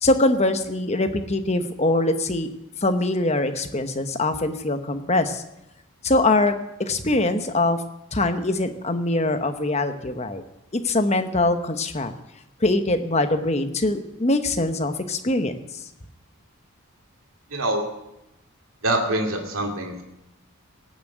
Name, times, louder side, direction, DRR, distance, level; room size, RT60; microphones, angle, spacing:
voice 1, 0.0-2.5 2.8-5.4 6.0-6.5 6.8-7.8 8.1-10.4 10.7-12.1 12.6-15.8, left 2 dB, 30° left, 8 dB, 1.0 m, -23 dB
voice 2, 17.5-17.9 18.8-20.0, right 1 dB, 70° right, 1 dB, 2.5 m, -25 dB
18.0 x 7.3 x 7.9 m, 0.88 s
head